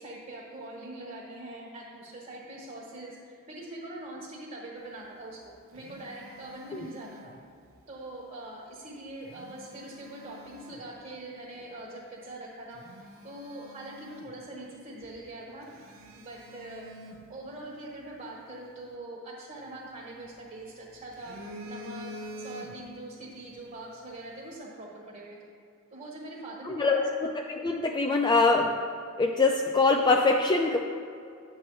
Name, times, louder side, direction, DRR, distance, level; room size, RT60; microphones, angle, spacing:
voice 1, 0.0-5.4 5.7-7.3 7.9-12.8 13.2-15.6 16.1-21.4 21.7-25.4 25.9-27.1, right 1 dB, 35° right, -4 dB, 1.3 m, -43 dB
Telephone, 5.2-7.8 9.0-10.9 11.5-11.7 12.3-12.4 12.7-14.8 15.0-15.2 15.7-18.0 19.6-20.6 20.9-23.1 23.4-23.6, equal, 65° right, 1.0 m, -47 dB
voice 2, 26.6-27.1 27.3-28.7 29.2-30.8, left 3 dB, 20° left, 2 dB, 0.4 m, -23 dB
10.0 x 7.8 x 3.1 m, 2.3 s
head